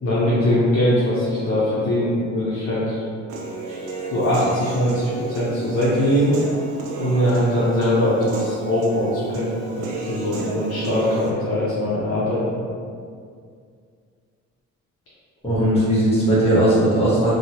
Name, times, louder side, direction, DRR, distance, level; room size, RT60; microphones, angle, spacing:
voice 1, 0.0-3.0 3.7-6.3 7.0-9.5 9.8-12.6, left 1 dB, 50° left, -10 dB, 0.8 m, -21 dB
Human voice / Piano, 3.3-11.3, right 3 dB, 85° right, 0.5 m, -32 dB
voice 2, 15.4-17.3, right 1 dB, 20° left, -10 dB, 1.3 m, -18 dB
2.8 x 2.3 x 2.8 m, 2.2 s
cardioid pair, 90°, 30 cm